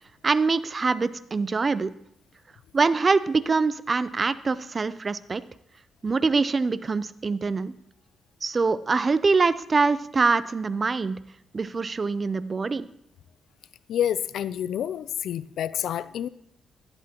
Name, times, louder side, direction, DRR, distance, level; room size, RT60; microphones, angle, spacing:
voice 1, 0.2-1.9 2.7-5.4 6.0-7.7 8.4-11.2 11.5-12.9, right 4 dB, 35° right, 0.5 m, -24 dB
voice 2, 13.9-16.3, left 10 dB, 80° left, 0.4 m, -28 dB
12.0 x 11.0 x 2.9 m
cardioid pair, 85°, 0 cm